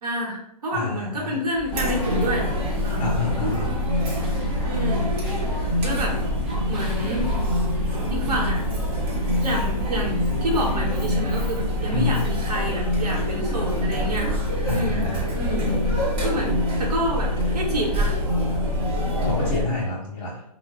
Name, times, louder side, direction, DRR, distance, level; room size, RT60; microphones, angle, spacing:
voice 1, 0.0-2.5 2.8-3.0 4.6-5.1 5.5-6.2 6.7-7.3 7.7-8.6 9.4-14.3 14.7-15.1 16.2-18.2, equal, 70° right, -3 dB, 0.9 m, -28 dB
voice 2, 0.7-1.4 3.0-3.8 11.9-12.3 14.7-15.2 19.2-20.4, left 3 dB, 60° left, -7 dB, 1.1 m, -28 dB
sound 1, 1.5-16.1, left 1 dB, ahead, 0.3 m, -40 dB
Chatter, 1.7-19.6, left 1 dB, 20° right, 0.9 m, -24 dB
2.4 x 2.1 x 3.6 m, 0.73 s
hypercardioid pair, 135°, 21 cm